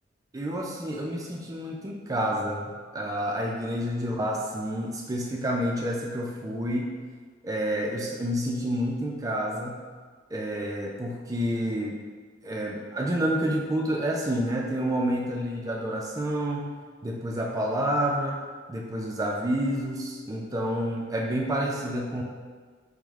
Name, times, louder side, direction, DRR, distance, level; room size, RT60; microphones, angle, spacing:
voice 1, 0.3-6.9 7.4-9.8 10.3-12.0 12.4-16.7 17.0-18.4 18.7-22.2, equal, 20° right, -1 dB, 0.3 m, -29 dB
4.8 x 2.1 x 3.5 m, 1.5 s
head